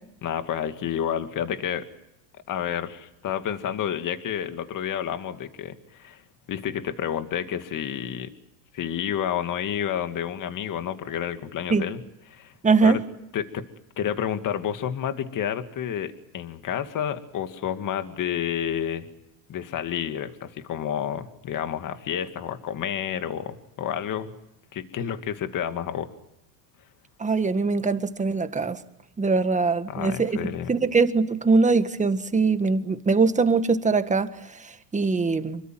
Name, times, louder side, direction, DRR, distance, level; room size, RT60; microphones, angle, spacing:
voice 1, 0.2-1.8 2.5-6.2 6.5-8.3 8.7-12.0 12.3-12.5 12.8-13.0 13.3-13.7 14.0-19.1 19.5-24.3 24.7-26.1 29.9-30.7, left 9 dB, 40° left, 2.4 m, -30 dB
voice 2, 12.6-13.0 27.2-28.8 29.2-35.6, right 4 dB, 15° right, 1.7 m, -22 dB
27.0 x 23.5 x 7.8 m
supercardioid pair, 115°, 46 cm